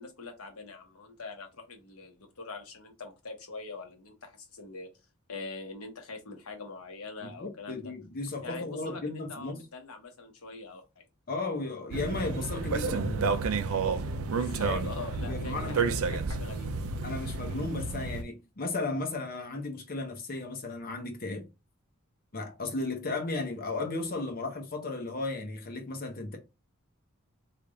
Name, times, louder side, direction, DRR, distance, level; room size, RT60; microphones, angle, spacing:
voice 1, 0.0-4.9 5.3-7.8 8.4-11.0 14.3-16.7, left 3 dB, 90° left, 1.1 m, -43 dB
voice 2, 7.2-9.6 11.3-13.3 14.6-14.9 15.2-16.0 17.0-21.4 22.3-26.4, left 3 dB, 40° left, 0.7 m, -35 dB
sound 1, 11.9-18.2, right 4 dB, 70° right, 0.5 m, -31 dB
3.3 x 2.4 x 3.7 m
head